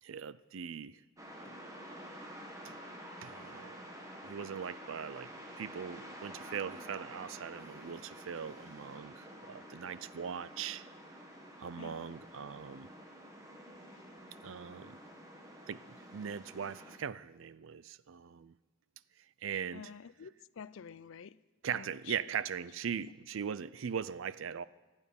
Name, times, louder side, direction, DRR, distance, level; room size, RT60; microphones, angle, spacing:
voice 1, 0.0-1.0 2.6-2.7 3.2-3.8 4.2-5.3 5.6-10.8 11.6-12.9 14.4-15.0 15.7-15.8 16.1-18.5 19.4-19.9 21.6-24.6, right 7 dB, 70° right, 0.4 m, -40 dB
sound 1, 1.2-17.0, equal, 15° right, 1.6 m, -50 dB
voice 2, 19.7-21.4 21.7-22.1 23.0-23.1, left 6 dB, 70° left, 0.4 m, -49 dB
25.0 x 9.0 x 5.3 m
head